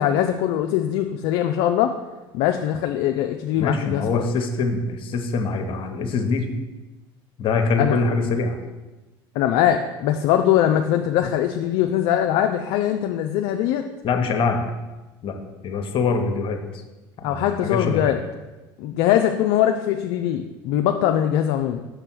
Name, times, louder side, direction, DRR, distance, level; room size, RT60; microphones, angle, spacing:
voice 1, 0.0-1.9 2.3-4.2 7.8-8.0 9.4-13.8 17.2-18.2 18.8-21.9, left 11 dB, 65° left, 5 dB, 0.4 m, -21 dB
voice 2, 3.6-6.5 7.4-8.6 14.0-14.6 15.2-15.4 15.6-16.6 17.2-18.2, left 4 dB, 45° left, 5 dB, 1.0 m, -24 dB
6.1 x 3.4 x 6.0 m, 1.1 s
hypercardioid pair, 85°, 12 cm